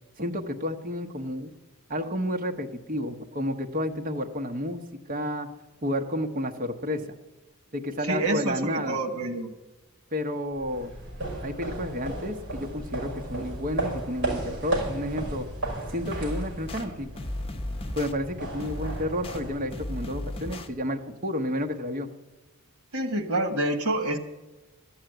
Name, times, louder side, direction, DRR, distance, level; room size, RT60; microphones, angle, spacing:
voice 1, 0.2-1.5 1.9-4.8 5.1-5.5 5.8-7.1 7.7-9.0 10.1-10.9 11.4-15.5 15.9-17.1 17.9-22.1, equal, 40° right, 5 dB, 1.0 m, -31 dB
voice 2, 8.0-9.5 22.9-24.2, right 1 dB, 85° right, 9 dB, 1.4 m, -27 dB
sound 1, 10.6-20.2, right 2 dB, 55° right, 5.7 m, -35 dB
sound 2, 16.0-16.8 17.1-18.1 18.6-19.4 19.7-20.7, left 1 dB, 25° left, 0.8 m, -35 dB
12.5 x 7.3 x 9.1 m, 1.1 s
head